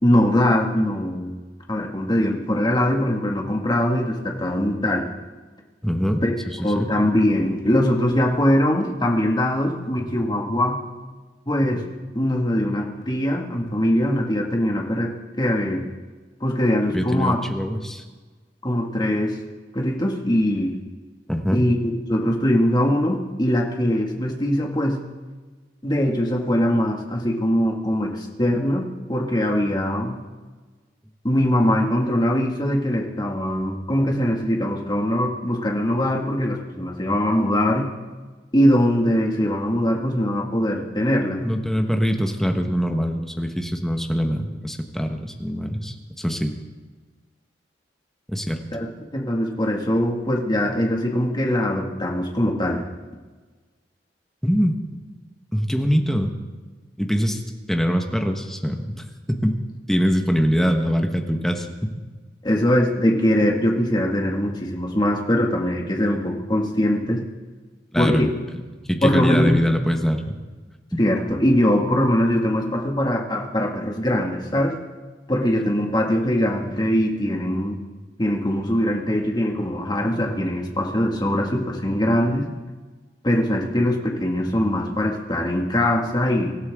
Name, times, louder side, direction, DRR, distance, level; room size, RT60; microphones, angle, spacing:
voice 1, 0.0-1.3 1.7-5.1 6.2-6.3 6.6-10.8 11.5-11.8 12.1-15.8 16.4-17.4 18.6-19.4 19.7-20.7 21.5-21.8 22.1-25.0 25.8-30.2 31.2-37.9 38.5-41.4 48.7-52.8 62.4-67.2 68.0-68.3 69.0-69.6 71.0-74.8 75.3-77.8 78.2-82.5 83.2-86.5, equal, 25° left, 0 dB, 2.0 m, -22 dB
voice 2, 5.8-6.9 16.9-18.0 21.3-21.7 41.4-46.5 48.3-48.6 54.4-54.7 55.5-56.3 57.0-57.4 57.7-59.6 59.9-61.9 67.9-68.3 68.9-70.3 70.9-71.0, equal, ahead, 4 dB, 1.3 m, -23 dB
25.0 x 12.5 x 3.7 m, 1.3 s
head